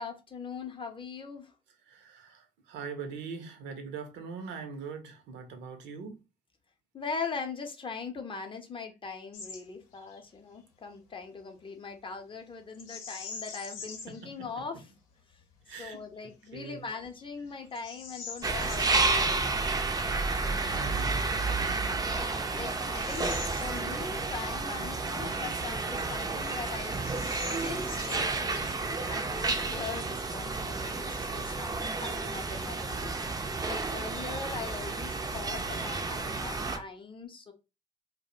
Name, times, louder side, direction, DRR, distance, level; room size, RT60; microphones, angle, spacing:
voice 1, 0.0-1.5 6.9-14.9 15.8-19.4 20.4-21.3 22.1-27.1 27.6-37.5, left 5 dB, 25° left, 0.6 m, -41 dB
voice 2, 1.9-6.2 14.1-14.5 15.7-16.0 16.5-16.8 20.7-21.3, right 5 dB, 65° right, 0.6 m, -42 dB
Bird vocalization bird call bird song, 9.3-9.6 9.9-10.2 12.7-14.2 14.8-14.9 15.5-15.9 16.5-16.6 17.1-19.0 21.1-21.2 21.9-24.3 24.7-24.8 25.5-26.3 26.5-26.6 26.9-29.0, left 6 dB, 75° left, 0.6 m, -44 dB
sound 1, 18.4-36.8, right 3 dB, 20° right, 0.4 m, -31 dB
2.3 x 2.0 x 2.7 m
hypercardioid pair, 55°, 20 cm